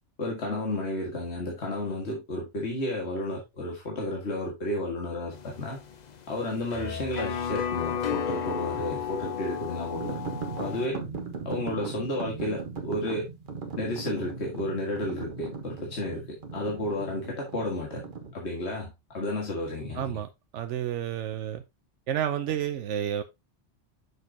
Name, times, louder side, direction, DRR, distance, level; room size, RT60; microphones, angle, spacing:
voice 1, 0.2-5.8 6.3-10.2 10.6-11.0 11.5-13.3 13.8-18.0 18.3-20.2, left 1 dB, 70° left, 2.1 m, -32 dB
sound 1, 5.3-10.9, left 7 dB, 45° left, 0.7 m, -33 dB
sound 2, 9.9-18.3, right 4 dB, 45° right, 1.3 m, -38 dB
voice 2, 19.9-21.6 22.1-23.2, right 10 dB, 85° right, 1.0 m, -30 dB
6.7 x 6.4 x 2.8 m
omnidirectional pair, 1.2 m